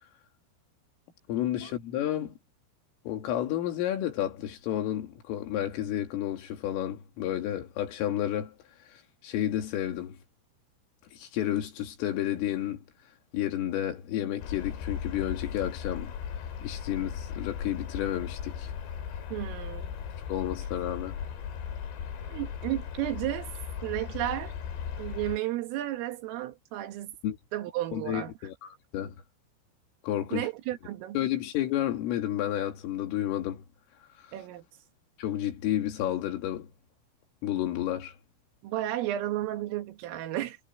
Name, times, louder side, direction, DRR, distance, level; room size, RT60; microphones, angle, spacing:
voice 1, 1.3-2.4 3.1-8.5 9.2-10.2 11.1-12.8 13.3-16.1 16.6-18.7 20.3-21.2 27.2-27.4 27.9-29.2 30.0-30.5 31.2-33.6 35.2-36.7 37.4-38.1, left 12 dB, 80° left, 5.2 m, -31 dB
sound 1, 14.4-25.4, left 8 dB, 60° left, 5.0 m, -37 dB
voice 2, 19.3-19.9 22.2-23.5 23.8-24.5 25.0-27.1 27.5-28.3 30.3-31.2 34.3-34.7 38.6-40.6, right 14 dB, 80° right, 4.4 m, -33 dB
omnidirectional pair, 5.8 m